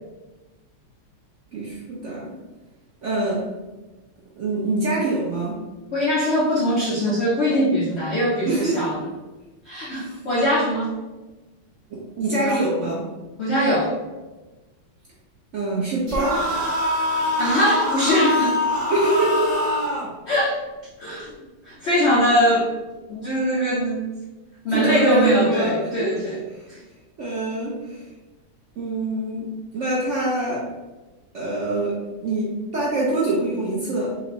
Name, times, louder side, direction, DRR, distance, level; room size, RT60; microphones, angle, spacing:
voice 1, 1.5-2.3 3.0-3.5 4.4-5.6 8.5-8.9 9.9-10.2 11.9-13.1 15.5-16.5 18.9-19.7 24.7-26.1 26.5-26.7 27.2-28.1 28.8-29.4 29.7-30.7 31.3-34.2, right 2 dB, 70° right, -5 dB, 0.7 m, -25 dB
voice 2, 5.9-9.0 9.7-10.9 12.3-12.6 13.4-13.9 17.4-18.6 20.3-20.6 21.0-21.3 21.6-22.7 23.1-24.1 24.6-26.4 26.7-26.8, equal, 70° left, -6 dB, 0.6 m, -21 dB
sound 1, 16.1-20.1, left 1 dB, 25° right, 1.1 m, -24 dB
4.2 x 2.5 x 3.0 m, 1.1 s
omnidirectional pair, 2.1 m